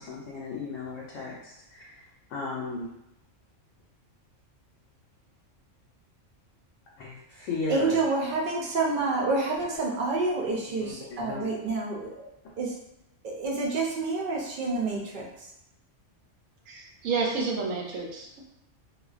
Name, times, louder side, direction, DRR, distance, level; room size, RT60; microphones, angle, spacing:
voice 1, 0.0-2.0 2.3-2.9 7.0-8.0 10.8-10.9 11.2-11.5, left 3 dB, 90° left, -4 dB, 0.9 m, -35 dB
voice 2, 7.4-12.3 12.6-12.8 13.2-15.5, right 3 dB, 60° right, -2 dB, 0.5 m, -28 dB
voice 3, 16.7-18.4, right 4 dB, 85° right, -1 dB, 1.0 m, -30 dB
2.4 x 2.1 x 2.4 m, 0.83 s
omnidirectional pair, 1.3 m